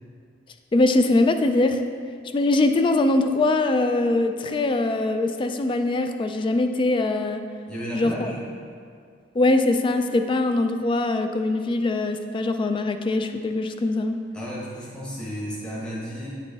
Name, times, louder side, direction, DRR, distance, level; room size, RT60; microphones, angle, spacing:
voice 1, 0.7-1.8 2.3-7.4 7.9-8.3 9.3-14.2, left 2 dB, 25° left, 7 dB, 0.3 m, -22 dB
voice 2, 7.7-8.4 14.3-16.3, equal, 5° left, -7 dB, 1.0 m, -33 dB
8.7 x 4.1 x 3.4 m, 2.2 s
head